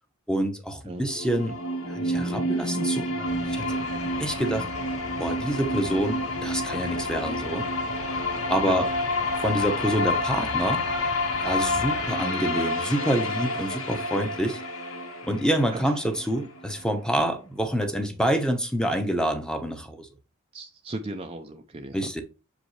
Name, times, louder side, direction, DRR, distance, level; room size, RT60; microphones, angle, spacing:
voice 1, 0.3-1.6 1.9-3.8 4.2-4.7 5.2-7.7 8.5-8.9 9.4-10.8 11.4-14.6 15.2-20.1 21.9-22.2, equal, 5° left, 0.9 m, -27 dB
sound 1, 0.9-16.9, left 1 dB, 70° left, 1.4 m, -29 dB
sound 2, 3.3-12.1, left 4 dB, 35° left, 0.4 m, -40 dB
voice 2, 20.5-22.2, right 2 dB, 25° right, 0.5 m, -37 dB
6.7 x 5.1 x 3.2 m
head